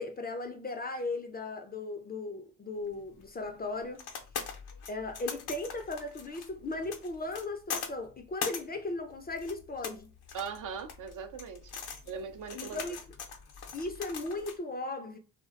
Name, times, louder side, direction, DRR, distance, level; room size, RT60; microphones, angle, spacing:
voice 1, 0.0-4.1 4.9-10.1 12.5-13.0 13.7-15.2, left 2 dB, 25° left, 0.4 m, -37 dB
sound 1, 2.9-14.6, left 6 dB, 75° left, 0.6 m, -42 dB
voice 2, 10.3-11.7 12.1-12.9, right 6 dB, 55° right, 0.5 m, -40 dB
2.5 x 2.1 x 2.3 m
supercardioid pair, 60°, 39 cm